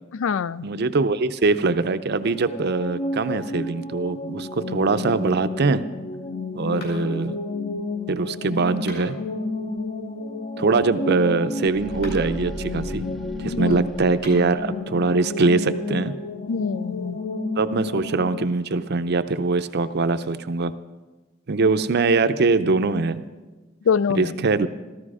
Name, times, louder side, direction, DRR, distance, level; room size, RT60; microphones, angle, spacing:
voice 1, 0.1-0.7 13.4-13.8 16.5-17.2 23.9-24.3, left 6 dB, 75° left, 18 dB, 0.4 m, -24 dB
voice 2, 0.6-5.8 6.6-7.4 8.1-9.2 10.6-13.1 13.4-16.1 17.6-20.7 21.5-23.2 24.1-24.7, right 3 dB, 55° right, 11 dB, 0.6 m, -22 dB
sound 1, 2.2-18.5, left 2 dB, 40° left, 0.7 m, -31 dB
sound 2, 6.8-7.3 8.7-9.3 11.9-12.4 14.1-14.6, left 2 dB, 55° left, 5.1 m, -43 dB
sound 3, 11.6-14.9, equal, ahead, 0.8 m, -37 dB
14.0 x 14.0 x 4.9 m, 1.2 s
head